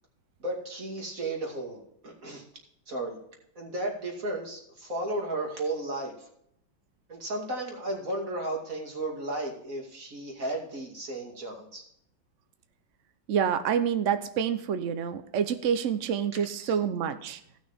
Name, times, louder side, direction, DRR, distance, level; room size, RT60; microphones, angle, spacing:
voice 1, 0.4-2.4 2.9-3.2 3.6-6.2 7.1-11.8 16.3-16.7, right 2 dB, 40° right, 0 dB, 2.7 m, -34 dB
voice 2, 13.3-17.4, right 8 dB, 75° right, 10 dB, 0.7 m, -27 dB
16.5 x 6.2 x 3.5 m, 0.72 s
omnidirectional pair, 2.2 m